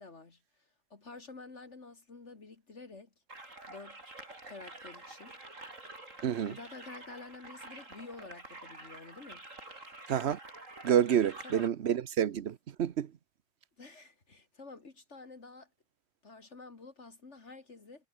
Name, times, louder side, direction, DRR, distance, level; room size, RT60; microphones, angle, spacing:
voice 1, 0.0-3.1 3.7-4.1 4.5-5.4 6.4-9.5 11.4-11.6 13.8-15.7 16.2-18.1, left 3 dB, 65° left, 2.7 m, -49 dB
sound 1, 3.3-11.7, right 2 dB, 90° right, 6.0 m, -48 dB
voice 2, 6.2-6.5 10.1-10.4 10.8-13.1, right 9 dB, 60° right, 1.1 m, -28 dB
omnidirectional pair, 1.3 m